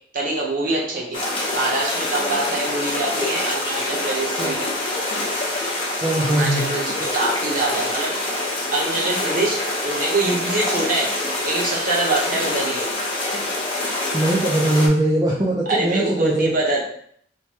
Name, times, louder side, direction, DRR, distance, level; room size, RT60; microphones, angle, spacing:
voice 1, 0.1-4.8 6.2-8.1 8.7-11.1 11.4-12.9 15.7-16.8, right 2 dB, 50° right, -2 dB, 1.0 m, -24 dB
sound 1, 1.1-14.9, left 2 dB, 30° left, 0.8 m, -25 dB
voice 2, 6.0-6.7 14.1-16.5, right 1 dB, 20° right, -4 dB, 0.5 m, -20 dB
3.2 x 2.2 x 4.3 m, 0.62 s
head